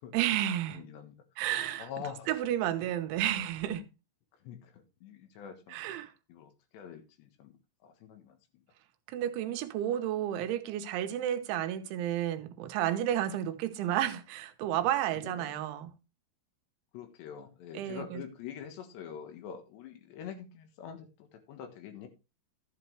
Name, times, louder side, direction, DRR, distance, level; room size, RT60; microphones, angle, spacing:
voice 1, 0.1-0.8 1.4-1.9 2.3-3.8 5.7-6.1 9.1-15.9 17.8-18.2, right 11 dB, 90° right, 3.4 m, -31 dB
voice 2, 0.7-1.2 1.8-2.3 4.4-5.8 6.3-7.6 7.8-8.6 15.2-15.7 16.9-22.1, left 8 dB, 70° left, 3.6 m, -45 dB
12.5 x 8.4 x 3.2 m
omnidirectional pair, 5.2 m